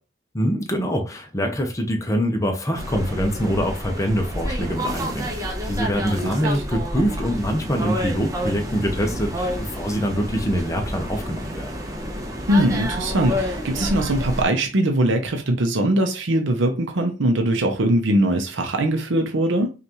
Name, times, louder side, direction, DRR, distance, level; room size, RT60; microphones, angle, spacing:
voice 1, 0.3-11.7, equal, 15° left, 0.7 m, -24 dB
sound 1, 2.7-14.4, equal, 15° right, 0.8 m, -29 dB
voice 2, 12.5-19.7, right 1 dB, 65° right, 0.7 m, -21 dB
5.4 x 2.5 x 3.0 m
head